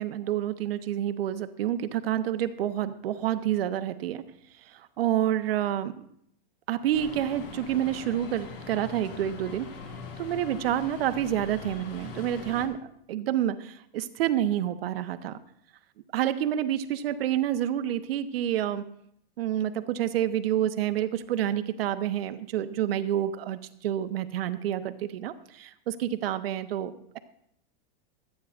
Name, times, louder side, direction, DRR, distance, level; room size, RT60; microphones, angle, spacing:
voice 1, 0.0-4.2 4.7-6.1 6.7-9.7 10.2-15.4 16.1-18.8 19.4-27.2, right 11 dB, 75° right, 10 dB, 1.1 m, -28 dB
sound 1, 6.9-12.7, left 5 dB, 70° left, 2.8 m, -42 dB
26.0 x 9.4 x 2.6 m, 0.71 s
supercardioid pair, 165°, 30 cm